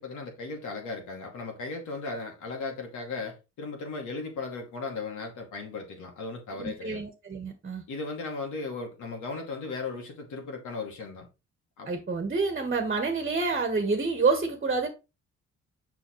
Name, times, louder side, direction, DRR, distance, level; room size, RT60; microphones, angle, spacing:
voice 1, 0.0-7.0 7.9-11.3 11.8-11.9, left 3 dB, 80° left, 2.4 m, -36 dB
voice 2, 6.6-7.8 11.9-14.9, right 4 dB, 30° right, 1.4 m, -28 dB
6.5 x 5.8 x 3.1 m
cardioid pair, 90°, 30 cm